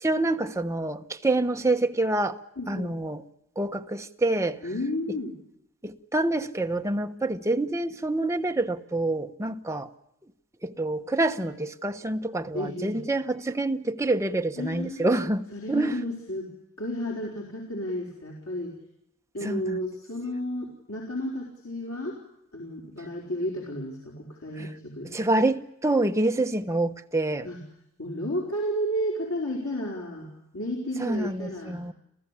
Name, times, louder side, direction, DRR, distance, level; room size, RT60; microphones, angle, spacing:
voice 1, 0.0-2.4 2.7-3.2 3.6-4.6 5.8-9.9 10.6-15.9 19.4-19.8 24.6-24.7 25.0-27.5 31.0-31.9, right 2 dB, 15° right, 1.1 m, -27 dB
voice 2, 2.6-3.0 4.6-5.3 12.5-13.0 14.6-15.1 15.5-16.5 16.8-18.7 19.3-22.2 22.5-25.1 27.4-27.6 28.0-30.3 30.5-31.8, equal, 85° left, 4.6 m, -32 dB
27.5 x 16.0 x 10.0 m
head